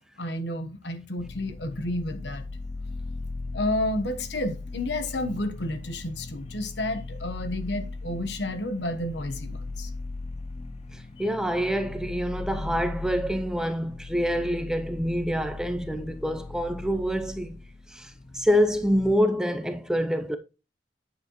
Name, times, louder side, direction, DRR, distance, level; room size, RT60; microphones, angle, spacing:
voice 1, 0.2-2.4 3.5-9.9, left 1 dB, 75° left, 1.2 m, -31 dB
sound 1, 1.2-19.2, left 3 dB, 35° left, 0.7 m, -38 dB
voice 2, 10.9-17.6 17.9-20.4, equal, 5° right, 0.5 m, -26 dB
9.2 x 7.4 x 3.1 m
head